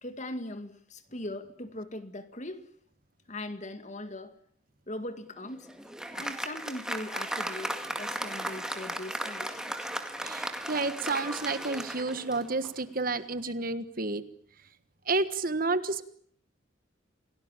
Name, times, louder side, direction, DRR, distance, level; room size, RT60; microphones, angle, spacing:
voice 1, 0.0-2.7 3.3-4.4 4.9-5.7 6.1-9.9, left 1 dB, 35° left, 10 dB, 2.1 m, -40 dB
Applause, 5.4-12.9, right 1 dB, 5° right, 2.0 m, -36 dB
voice 2, 10.2-14.2 15.1-16.0, right 3 dB, 45° right, 13 dB, 1.5 m, -30 dB
28.0 x 18.0 x 9.0 m, 0.62 s
head